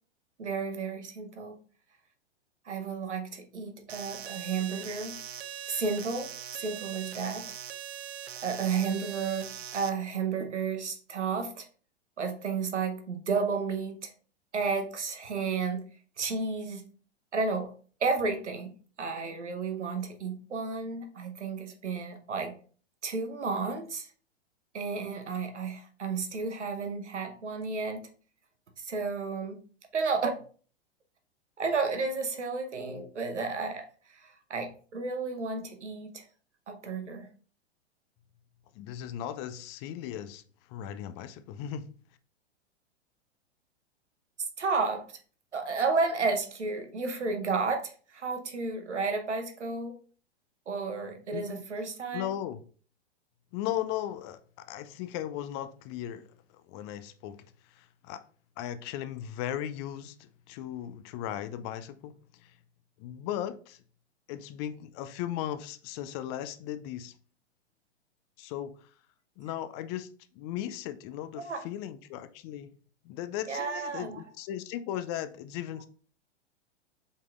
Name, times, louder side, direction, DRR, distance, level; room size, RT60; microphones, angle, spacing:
voice 1, 0.4-1.6 2.6-5.2 5.7-7.5 8.4-11.7 12.2-14.1 14.5-15.8 16.2-16.8 17.3-17.7 18.0-18.7 19.0-22.5 23.0-24.1 24.7-28.0 28.8-29.6 29.9-30.4 31.6-36.2 36.7-37.3 44.6-45.1 45.5-50.0 50.7-52.3 71.4-71.6 73.5-74.2, right 4 dB, 85° right, 1.0 m, -32 dB
sound 1, 3.9-9.9, right 10 dB, 65° right, 0.6 m, -41 dB
voice 2, 38.7-40.4 40.7-41.9 51.3-51.6 52.1-52.6 53.5-56.3 56.5-57.4 57.7-58.2 58.6-62.1 62.4-62.5 63.0-63.8 64.3-67.2 68.4-68.7 69.4-72.7 73.0-75.9, left 11 dB, 25° left, 0.3 m, -37 dB
5.2 x 4.0 x 2.4 m
figure-of-eight pair, 105°, 34 cm